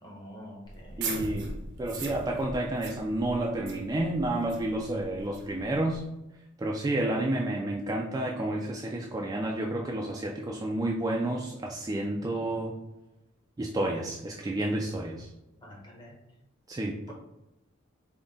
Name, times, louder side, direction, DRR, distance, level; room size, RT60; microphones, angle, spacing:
voice 1, 0.0-1.0 15.6-16.2, equal, 20° left, -1 dB, 0.9 m, -47 dB
sound 1, 0.6-6.0, right 3 dB, 60° right, 0.6 m, -40 dB
voice 2, 1.0-6.0 6.6-12.7 13.6-15.3 16.7-16.9, right 1 dB, 20° right, -1 dB, 0.3 m, -30 dB
3.9 x 2.1 x 3.6 m, 0.94 s
head